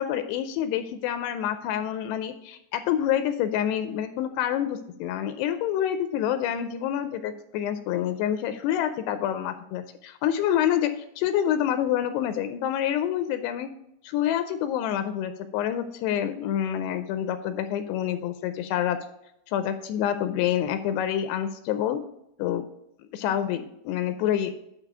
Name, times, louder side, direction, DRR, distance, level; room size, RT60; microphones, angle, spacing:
voice 1, 0.0-10.9 11.2-13.7 14.0-19.0 19.5-22.0 22.4-22.6 23.1-24.5, left 10 dB, 85° left, 9 dB, 2.6 m, -27 dB
10.0 x 4.1 x 4.8 m, 0.79 s
omnidirectional pair, 4.9 m